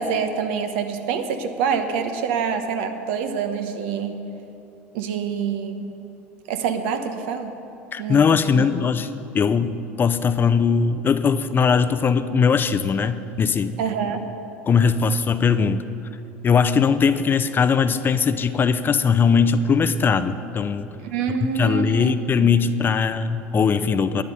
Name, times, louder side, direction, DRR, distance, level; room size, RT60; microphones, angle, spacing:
voice 1, 0.0-4.2 4.9-5.9 6.5-7.5 8.0-8.6 13.8-14.3 21.0-22.1 22.4-22.5, right 6 dB, 70° right, 7 dB, 1.1 m, -26 dB
voice 2, 7.9-9.1 9.3-13.8 14.7-15.8 16.4-20.9 21.4-24.2, left 6 dB, 30° left, 11 dB, 0.6 m, -20 dB
12.0 x 9.6 x 5.6 m, 2.9 s
hypercardioid pair, 80°, 7 cm